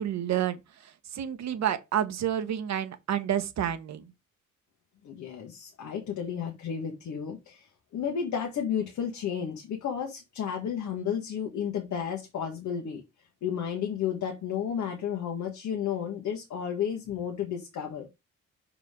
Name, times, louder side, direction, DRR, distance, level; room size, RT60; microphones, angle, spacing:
voice 1, 0.0-4.1, right 10 dB, 65° right, 1.2 m, -30 dB
voice 2, 5.0-13.0 13.4-18.1, left 8 dB, 70° left, 1.6 m, -32 dB
5.7 x 5.0 x 3.7 m
cardioid pair, 90°, 30 cm